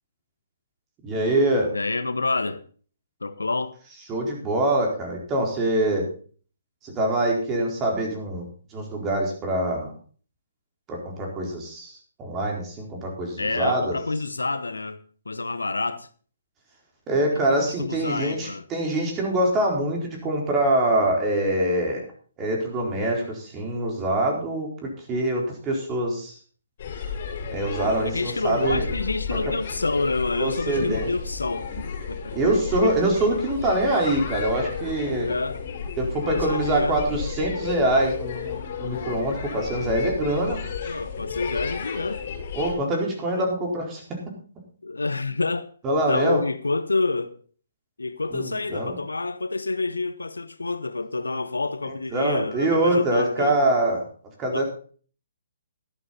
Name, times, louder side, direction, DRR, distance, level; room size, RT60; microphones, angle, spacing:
voice 1, 1.0-1.7 4.1-6.1 6.8-8.4 8.7-9.9 10.9-14.0 17.1-22.0 22.4-26.4 27.5-28.9 30.4-31.1 32.3-35.3 36.0-40.6 42.5-44.0 45.8-46.4 48.3-49.0 52.1-54.1 54.4-54.6, right 1 dB, 20° right, 4.4 m, -24 dB
voice 2, 1.7-2.6 3.2-3.8 13.4-15.0 15.3-16.1 17.6-18.6 28.0-31.7 32.1-32.4 35.2-35.6 36.2-37.0 40.8-42.2 43.3-43.5 44.8-45.7 46.0-47.4 48.0-53.6 54.5-54.6, left 3 dB, 85° left, 1.0 m, -28 dB
sound 1, 26.8-42.7, left 6 dB, 45° left, 5.4 m, -33 dB
12.5 x 11.0 x 4.2 m
figure-of-eight pair, 135°, 0 cm